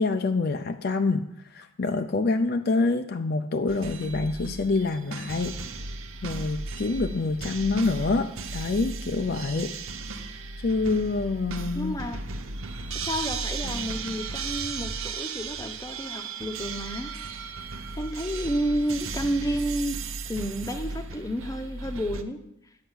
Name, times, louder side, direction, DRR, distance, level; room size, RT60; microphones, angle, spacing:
voice 1, 0.0-5.6 6.2-9.7 10.6-11.9, left 3 dB, 50° left, 7 dB, 0.5 m, -26 dB
sound 1, 3.7-22.2, right 4 dB, 75° right, 0.8 m, -35 dB
voice 2, 11.7-12.2 12.9-17.1 18.0-22.4, equal, 15° left, 7 dB, 0.7 m, -31 dB
9.4 x 5.7 x 8.0 m, 0.80 s
head